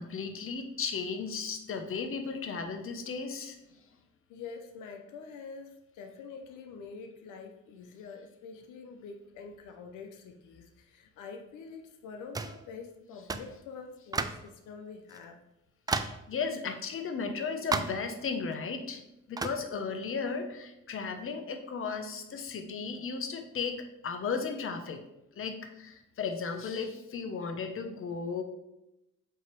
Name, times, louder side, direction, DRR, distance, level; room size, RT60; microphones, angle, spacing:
voice 1, 0.0-3.8 15.9-19.0 19.3-25.0 25.4-28.4, left 5 dB, 45° left, 6 dB, 0.9 m, -35 dB
voice 2, 4.3-15.4, left 5 dB, 85° left, 5 dB, 0.7 m, -46 dB
sound 1, 12.3-12.6 13.3-13.5 14.1-14.5 15.1-15.2 15.9-16.2 17.7-18.1 19.4-19.6, right 3 dB, 15° right, 0.4 m, -32 dB
7.8 x 3.0 x 4.6 m, 0.90 s
cardioid pair, 90°, 30 cm